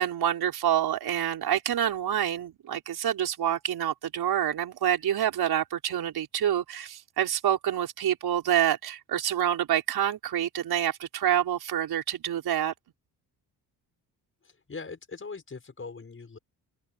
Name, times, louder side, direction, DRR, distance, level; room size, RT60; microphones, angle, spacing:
voice 1, 0.0-12.7, right 10 dB, 70° right, 5.1 m, -27 dB
voice 2, 14.4-16.4, left 4 dB, 35° left, 6.1 m, -41 dB
cardioid pair, 85°, 38 cm